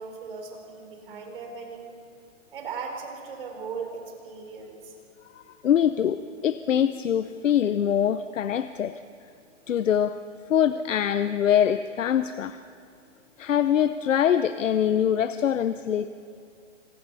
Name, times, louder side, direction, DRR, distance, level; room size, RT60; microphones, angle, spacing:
voice 1, 0.0-2.0 2.5-4.9, right 5 dB, 45° right, 2 dB, 4.5 m, -38 dB
voice 2, 5.5-8.9 9.7-10.1 10.5-12.6 13.4-16.1, left 9 dB, 80° left, 11 dB, 0.9 m, -23 dB
27.0 x 26.5 x 4.2 m, 2.4 s
hypercardioid pair, 180°, 38 cm